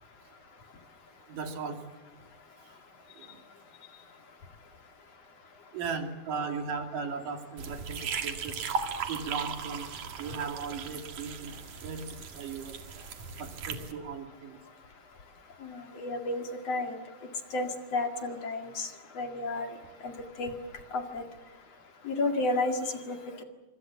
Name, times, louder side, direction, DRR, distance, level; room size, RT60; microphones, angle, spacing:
voice 1, 1.3-1.8 3.2-3.4 5.7-8.6 9.1-9.9 10.2-11.5 11.8-12.7 13.4-14.6, right 5 dB, 80° right, 5 dB, 4.0 m, -37 dB
sound 1, 7.6-13.9, right 6 dB, 60° right, 3.2 m, -37 dB
voice 2, 15.6-17.0 17.5-18.9 19.2-19.7 20.0-20.1 20.4-20.6 20.9-21.2 22.0-22.8 23.1-23.2, left 2 dB, 50° left, 5 dB, 3.1 m, -31 dB
26.0 x 25.5 x 7.3 m, 1.2 s
omnidirectional pair, 3.7 m